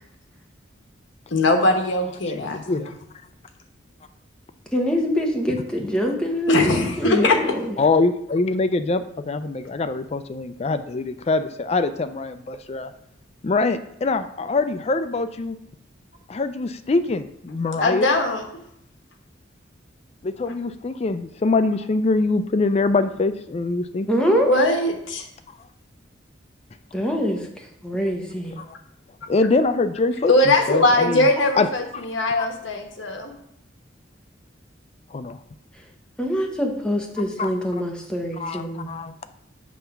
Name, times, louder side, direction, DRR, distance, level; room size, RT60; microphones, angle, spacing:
voice 1, 1.3-2.9 6.5-7.4 17.8-18.4 24.2-25.2 30.3-33.3, left 2 dB, 80° left, 4 dB, 1.1 m, -20 dB
voice 2, 2.3-2.9 7.8-12.9 13.4-15.6 16.3-18.1 20.2-24.2 28.6-28.7 29.3-31.3 31.6-31.7 31.9-32.0 32.4-32.5 35.1-35.4 37.4-37.5 38.4-39.1, left 3 dB, 35° left, 10 dB, 0.4 m, -24 dB
voice 3, 4.7-7.8 24.1-24.6 26.9-28.5 31.4-31.5 36.2-38.9, equal, 5° left, 0 dB, 1.0 m, -24 dB
7.3 x 3.4 x 5.8 m, 0.75 s
head